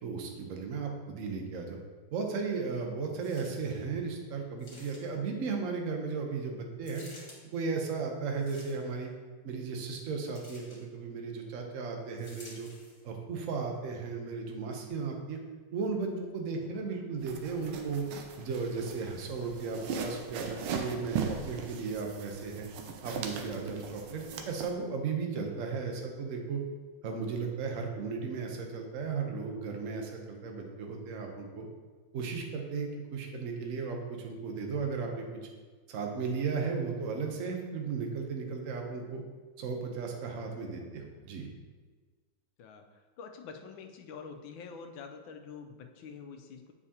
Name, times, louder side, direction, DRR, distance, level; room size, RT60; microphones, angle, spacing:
voice 1, 0.0-1.8 2.1-7.0 7.5-9.1 9.4-12.7 13.0-15.4 15.7-18.0 18.4-22.7 23.0-26.6 27.0-31.7 32.1-35.4 35.9-39.2 39.6-41.5, right 5 dB, 55° right, 2 dB, 0.9 m, -35 dB
sound 1, 3.2-3.8 4.6-5.3 6.8-7.4 8.3-9.0 10.3-10.8 12.2-13.0 13.7-13.8, left 2 dB, 30° left, 1.7 m, -53 dB
sound 2, 16.6-20.2, left 6 dB, 65° left, 0.9 m, -54 dB
sound 3, 17.2-24.7, right 6 dB, 85° right, 1.5 m, -39 dB
voice 2, 42.6-46.7, left 5 dB, 80° left, 4 dB, 1.4 m, -46 dB
8.3 x 4.7 x 2.8 m, 1.4 s
omnidirectional pair, 2.2 m